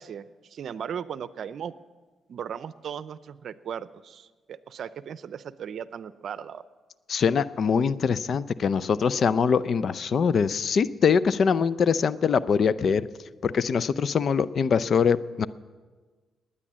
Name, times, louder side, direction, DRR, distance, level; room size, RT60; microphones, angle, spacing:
voice 1, 0.0-1.7 2.3-6.6, right 8 dB, 70° right, 15 dB, 0.6 m, -37 dB
voice 2, 7.1-13.1 13.4-15.5, left 6 dB, 60° left, 17 dB, 0.6 m, -23 dB
19.0 x 9.9 x 7.5 m, 1.4 s
cardioid pair, 70°, 0 cm